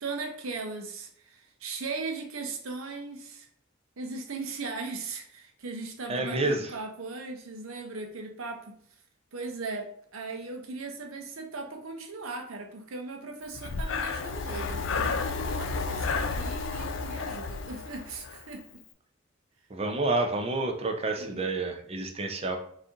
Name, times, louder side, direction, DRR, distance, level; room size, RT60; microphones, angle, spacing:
voice 1, 0.0-3.5 4.0-8.8 9.3-18.8 21.2-21.5, right 3 dB, 70° right, 4 dB, 0.8 m, -38 dB
voice 2, 6.1-6.7 19.7-22.6, right 2 dB, 30° right, 3 dB, 0.5 m, -29 dB
Breathing, 13.5-18.5, left 4 dB, 60° left, 0.4 m, -32 dB
4.0 x 2.7 x 3.6 m, 0.64 s
head